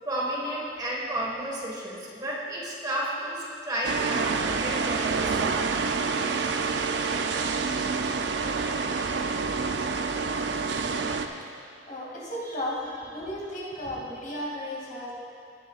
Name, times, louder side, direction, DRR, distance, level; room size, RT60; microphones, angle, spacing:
voice 1, 0.0-5.4, right 1 dB, 25° right, -4 dB, 1.6 m, -32 dB
sound 1, 3.8-11.3, right 4 dB, 80° right, 0.5 m, -27 dB
voice 2, 11.9-15.1, left 1 dB, 50° left, -5 dB, 2.4 m, -34 dB
17.5 x 9.4 x 2.4 m, 2.4 s
head